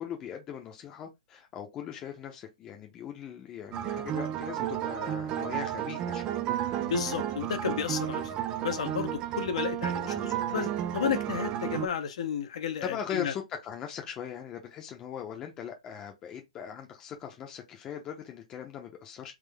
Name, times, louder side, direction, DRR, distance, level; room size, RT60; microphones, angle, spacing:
voice 1, 0.0-6.4 8.2-8.4 9.9-10.2 12.8-19.3, left 8 dB, 15° left, 0.8 m, -40 dB
sound 1, 3.7-11.9, right 11 dB, 20° right, 0.3 m, -32 dB
voice 2, 6.8-8.3 8.6-13.3, left 8 dB, 55° left, 0.8 m, -32 dB
3.7 x 3.2 x 3.4 m
hypercardioid pair, 165°, 4 cm